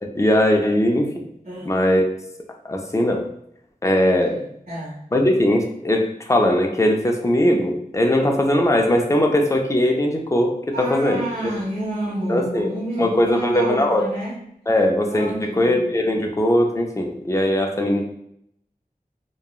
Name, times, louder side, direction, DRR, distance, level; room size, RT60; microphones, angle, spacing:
voice 1, 0.0-1.1 1.7-2.1 2.6-3.3 3.8-4.4 5.1-11.2 12.3-12.7 13.0-14.1 14.7-18.0, left 1 dB, 20° left, 2 dB, 0.4 m, -19 dB
voice 2, 4.2-5.0 10.7-14.4 15.1-15.8, right 1 dB, 70° right, -11 dB, 1.2 m, -30 dB
2.8 x 2.2 x 2.3 m, 0.72 s
wide cardioid pair, 50°, 15 cm